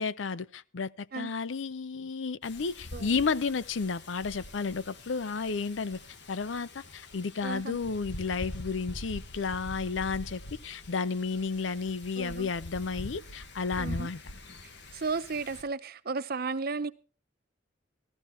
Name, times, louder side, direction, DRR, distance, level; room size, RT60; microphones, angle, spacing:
voice 1, 0.0-6.0 6.3-14.2, left 4 dB, 80° left, 0.6 m, -32 dB
Wind, 2.4-15.6, left 1 dB, 65° left, 1.6 m, -44 dB
voice 2, 7.4-7.8 12.2-12.5 13.8-14.1 14.9-16.9, right 4 dB, 55° right, 0.8 m, -34 dB
14.5 x 13.5 x 4.4 m
head